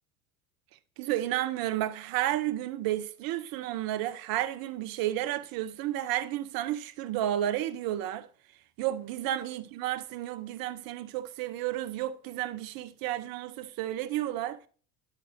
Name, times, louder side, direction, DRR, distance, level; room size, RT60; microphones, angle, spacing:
voice 1, 1.0-8.3 8.8-14.6, right 13 dB, 50° right, 0.8 m, -32 dB
10.5 x 6.1 x 2.7 m
hypercardioid pair, 75°, 46 cm